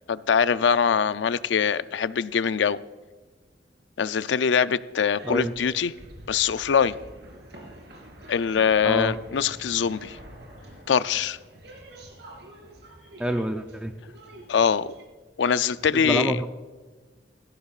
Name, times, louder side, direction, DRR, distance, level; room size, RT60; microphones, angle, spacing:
voice 1, 0.1-2.8 4.0-5.9 6.3-6.9 8.3-10.2 10.9-11.4 14.5-14.9 15.4-16.4, left 7 dB, 85° left, 0.4 m, -23 dB
sound 1, 5.1-15.0, right 1 dB, 65° right, 3.1 m, -47 dB
voice 2, 5.2-5.5 8.8-9.2 13.2-14.0 15.9-16.5, equal, 5° right, 0.5 m, -27 dB
17.0 x 14.0 x 2.4 m
head